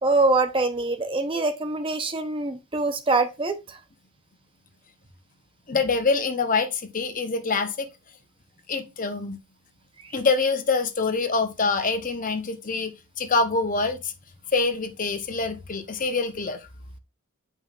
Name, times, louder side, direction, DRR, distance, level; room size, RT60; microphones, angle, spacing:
voice 1, 0.0-3.8, right 3 dB, 25° right, 0.7 m, -24 dB
voice 2, 5.7-7.9 8.7-9.4 10.1-14.1 14.5-16.6, left 4 dB, 35° left, 0.8 m, -25 dB
9.1 x 5.4 x 2.4 m
head